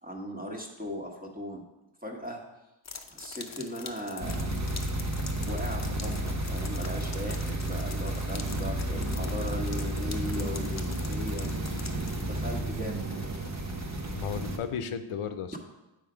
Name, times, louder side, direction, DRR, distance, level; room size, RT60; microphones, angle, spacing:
voice 1, 0.0-1.6 2.0-2.4 3.1-4.5 5.5-11.5 12.1-13.3 13.8-14.0 15.5-15.6, equal, 15° right, 0 dB, 1.3 m, -38 dB
sound 1, 2.8-12.2, left 5 dB, 35° left, 0.6 m, -45 dB
sound 2, 4.2-14.6, right 1 dB, 35° right, 1.0 m, -32 dB
voice 2, 14.1-15.6, left 6 dB, 85° left, 10 dB, 0.7 m, -34 dB
7.8 x 4.8 x 5.0 m, 1.0 s
wide cardioid pair, 75°, 49 cm